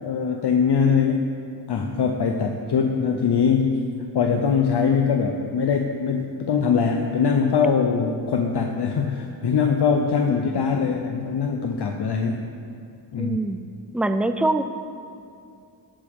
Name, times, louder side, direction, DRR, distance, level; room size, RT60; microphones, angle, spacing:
voice 1, 0.0-1.3 1.7-3.8 4.1-12.5 13.1-13.4, left 6 dB, 65° left, 2 dB, 0.8 m, -22 dB
voice 2, 10.5-11.0 13.2-13.6 13.9-14.6, right 2 dB, 5° right, 9 dB, 0.4 m, -25 dB
18.0 x 8.7 x 3.7 m, 2.5 s
wide cardioid pair, 150°, 44 cm